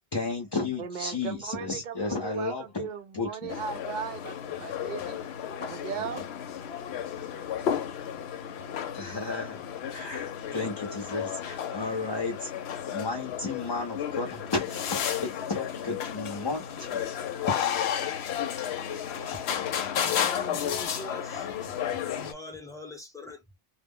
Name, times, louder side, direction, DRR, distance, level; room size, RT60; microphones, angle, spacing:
voice 1, 0.1-2.9 3.1-3.5 9.0-9.6 9.9-17.1, left 3 dB, 30° left, 0.6 m, -33 dB
voice 2, 0.8-5.2 5.6-6.2, right 7 dB, 55° right, 0.6 m, -37 dB
sound 1, 3.5-22.3, left 9 dB, 90° left, 0.8 m, -33 dB
voice 3, 19.9-21.5 22.0-23.6, left 2 dB, 5° left, 0.8 m, -42 dB
2.1 x 2.1 x 3.5 m
omnidirectional pair, 1.1 m